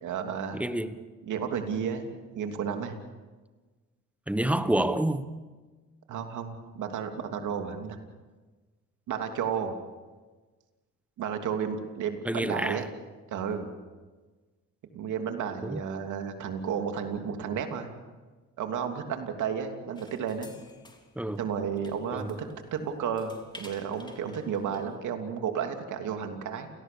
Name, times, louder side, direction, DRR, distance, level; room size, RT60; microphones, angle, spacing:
voice 1, 0.0-0.6 1.3-3.0 6.1-8.0 9.1-9.7 11.2-12.8 13.3-13.7 14.9-17.9 18.6-20.5 21.4-22.4 22.7-26.7, right 7 dB, 80° right, 5 dB, 2.9 m, -32 dB
voice 2, 0.5-1.0 4.3-5.2 12.2-12.9 15.6-15.8 21.1-21.4 22.1-22.4, right 1 dB, 5° right, 11 dB, 1.4 m, -28 dB
sound 1, 20.0-25.0, left 2 dB, 15° left, 3.6 m, -53 dB
29.0 x 18.0 x 7.0 m, 1.3 s
cardioid pair, 90°, 30 cm